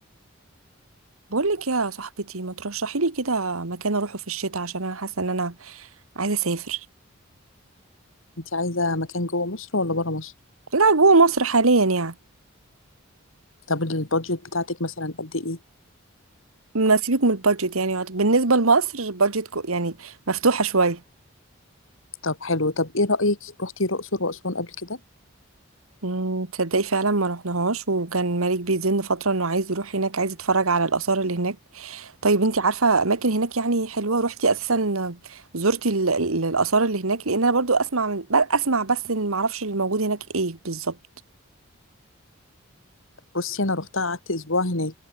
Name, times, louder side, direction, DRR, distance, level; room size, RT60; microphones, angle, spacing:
voice 1, 1.3-5.9 6.1-6.8 10.7-12.1 16.7-21.0 26.0-41.0, right 3 dB, 85° right, 1.7 m, -23 dB
voice 2, 8.5-10.3 13.7-15.6 22.2-25.0 43.3-44.9, left 2 dB, 70° left, 2.9 m, -26 dB
head